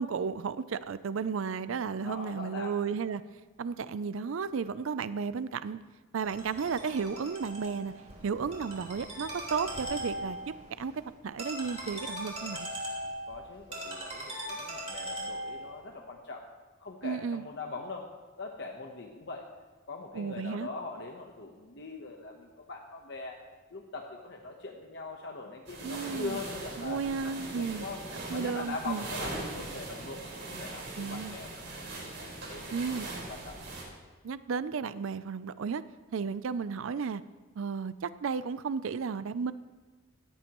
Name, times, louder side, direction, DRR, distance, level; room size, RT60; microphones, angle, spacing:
voice 1, 0.0-3.2 3.6-5.8 6.1-7.9 8.2-10.9 11.2-12.7 17.0-17.4 20.1-20.7 25.8-26.4 26.8-27.9 28.3-29.1 31.0-31.3 32.7-33.1 34.2-35.8 36.1-37.2 37.6-39.5, right 5 dB, 70° right, 15 dB, 0.4 m, -33 dB
voice 2, 2.0-2.8 13.3-16.4 16.8-18.1 18.4-19.5 19.9-23.4 23.7-28.0 28.3-32.6 33.1-33.6, left 3 dB, 55° left, 1 dB, 1.0 m, -42 dB
Ringtone, 6.2-15.8, right 1 dB, 30° right, 3.3 m, -40 dB
sound 1, 25.7-33.8, right 2 dB, 55° right, 4.4 m, -41 dB
17.0 x 13.5 x 3.0 m, 1.3 s
head